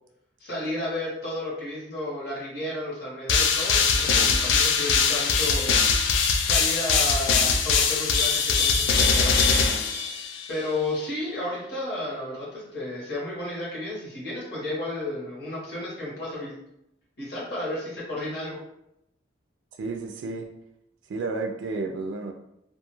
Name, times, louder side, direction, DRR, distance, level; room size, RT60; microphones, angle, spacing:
voice 1, 0.4-5.8 6.4-9.8 10.2-16.5 17.2-18.6, left 1 dB, 60° left, -6 dB, 1.2 m, -33 dB
sound 1, 3.3-10.6, left 5 dB, 90° left, 0.3 m, -22 dB
voice 2, 19.8-20.5 21.1-22.3, right 3 dB, 80° right, 4 dB, 0.3 m, -31 dB
2.4 x 2.3 x 3.0 m, 0.81 s
head